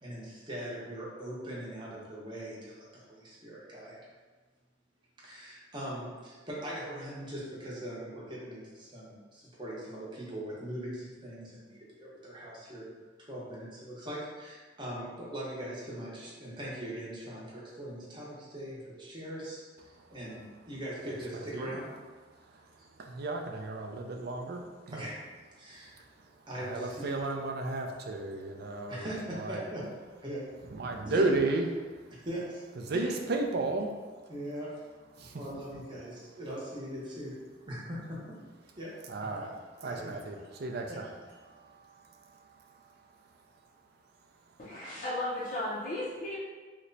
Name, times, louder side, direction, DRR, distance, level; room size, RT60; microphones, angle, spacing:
voice 1, 0.0-4.0 5.2-21.9 24.9-25.2 25.6-26.0 26.5-27.1 28.9-29.8 30.2-30.4 31.0-31.2 32.1-32.6 34.3-34.7 35.3-37.4 37.7-38.4 38.8-38.9 39.8-40.1, right 1 dB, 25° right, -6 dB, 0.8 m, -41 dB
voice 2, 19.8-20.7 21.1-21.8 22.2-25.0 25.6-29.6 30.6-32.3 32.7-34.3 35.1-35.8 39.0-41.1 41.4-44.6, right 2 dB, 55° right, 2 dB, 0.4 m, -35 dB
voice 3, 44.6-46.4, left 1 dB, 40° left, -8 dB, 0.5 m, -35 dB
2.9 x 2.1 x 3.9 m, 1.4 s
head